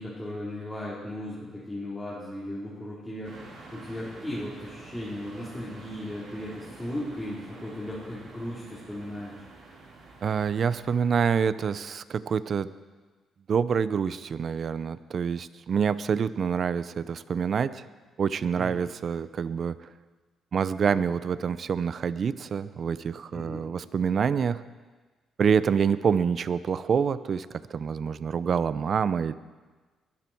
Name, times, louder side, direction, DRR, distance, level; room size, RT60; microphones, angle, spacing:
voice 1, 0.0-3.3 3.7-9.4 18.6-18.8 23.3-23.6, left 1 dB, 10° left, -9 dB, 4.4 m, -36 dB
sound 1, 3.2-11.0, right 3 dB, 65° right, 4.3 m, -48 dB
voice 2, 10.2-12.7 13.5-17.8 18.2-19.9 20.5-24.6 25.4-29.3, right 6 dB, 50° right, 15 dB, 0.6 m, -27 dB
22.0 x 13.0 x 4.6 m, 1.3 s
cardioid pair, 90°, 0 cm